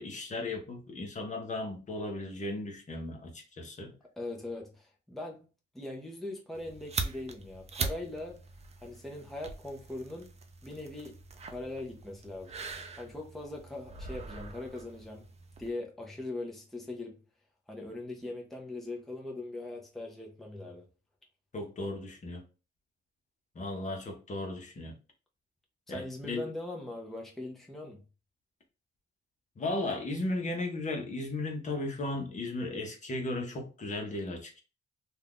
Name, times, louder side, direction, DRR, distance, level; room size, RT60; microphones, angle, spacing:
voice 1, 0.0-3.9 21.5-22.4 23.5-24.9 25.9-26.4 29.6-34.6, left 2 dB, 40° left, 1.0 m, -36 dB
voice 2, 4.2-5.5 5.7-8.4 8.8-10.3 10.6-11.2 11.5-12.5 13.0-15.3 15.6-17.2 17.7-20.8 25.9-28.0, left 2 dB, ahead, 0.8 m, -40 dB
sound 1, 6.5-15.7, right 4 dB, 35° right, 0.6 m, -41 dB
2.7 x 2.4 x 3.5 m
cardioid pair, 90°, 20 cm